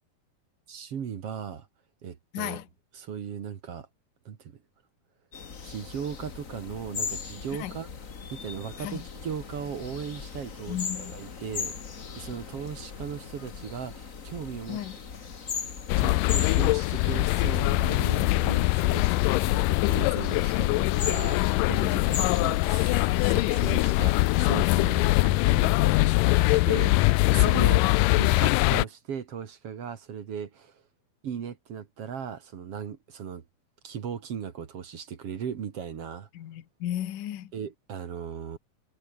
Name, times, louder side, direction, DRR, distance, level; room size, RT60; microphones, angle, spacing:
voice 1, 0.7-1.7 2.0-2.6 2.9-3.9 4.3-4.4 5.6-7.9 8.3-11.8 12.2-14.8 16.0-26.1 26.4-30.7 31.2-33.4 33.8-36.3 37.5-38.6, right 7 dB, 50° right, 2.3 m, -37 dB
voice 2, 2.3-2.7 7.5-7.7 8.8-9.1 10.7-11.2 14.7-15.0 21.7-22.2 25.8-26.0 27.5-27.9 36.3-37.5, left 12 dB, 65° left, 3.0 m, -36 dB
sound 1, 5.3-25.0, left 5 dB, 45° left, 1.0 m, -39 dB
sound 2, 15.9-28.9, left 22 dB, 85° left, 1.9 m, -23 dB
omnidirectional pair, 4.2 m